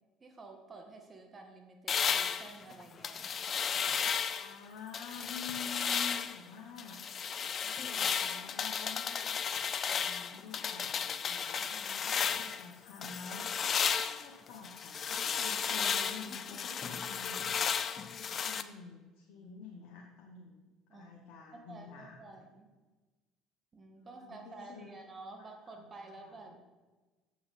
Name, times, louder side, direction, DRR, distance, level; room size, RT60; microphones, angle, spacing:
voice 1, 0.2-3.3 12.4-12.5 20.9-21.2 21.5-22.7 23.7-26.6, right 3 dB, 35° right, 3 dB, 1.9 m, -51 dB
sound 1, 1.9-4.5 4.9-6.4 6.8-12.7 13.0-18.6, left 7 dB, 45° left, 0.5 m, -34 dB
voice 2, 4.3-7.0 7.6-9.4 9.8-13.7 14.0-17.6 18.1-22.4 24.0-24.9 25.4-26.6, left 5 dB, 70° left, 1 dB, 1.0 m, -49 dB
7.2 x 6.1 x 5.6 m, 1.2 s
hypercardioid pair, 65°, 0 cm